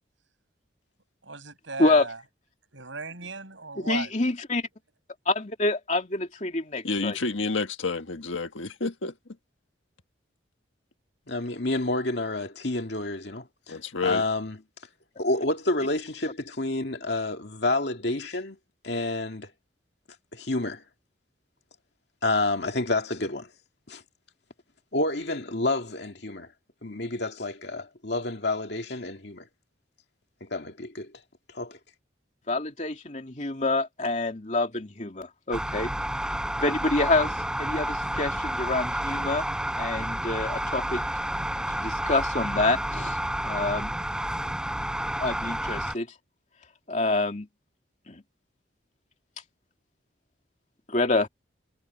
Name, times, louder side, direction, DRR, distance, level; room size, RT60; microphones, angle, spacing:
voice 1, 1.2-2.2 2.7-4.1, right 3 dB, 80° right, 6.5 m, -36 dB
voice 2, 3.8-4.7 5.3-7.2 32.5-35.9 36.6-39.5 39.8-41.0 41.7-43.2 43.4-43.9 45.2-46.1 46.9-47.5 48.1-48.2 50.9-51.3, left 2 dB, 40° left, 2.6 m, -27 dB
voice 3, 6.8-9.1 13.7-14.2, left 3 dB, 80° left, 1.6 m, -29 dB
voice 4, 11.3-13.8 14.0-14.6 15.2-18.6 18.8-19.5 20.3-20.8 22.2-23.5 23.9-24.0 24.9-26.5 26.8-29.5 30.5-31.1 31.5-31.8, left 2 dB, 60° left, 2.3 m, -29 dB
sound 1, 35.5-45.9, right 1 dB, 5° right, 4.5 m, -30 dB
head